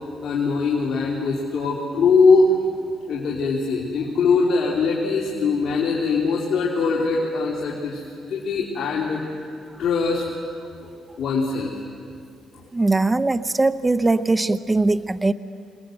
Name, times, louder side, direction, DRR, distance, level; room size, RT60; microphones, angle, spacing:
voice 1, 0.2-2.6 3.1-8.0 8.3-9.4 9.8-10.3 10.8-10.9 11.2-11.7, left 4 dB, 65° left, -3 dB, 3.2 m, -21 dB
voice 2, 12.7-15.3, right 2 dB, 20° right, 14 dB, 0.6 m, -20 dB
26.5 x 20.0 x 7.8 m, 2.3 s
cardioid pair, 90°, 0 cm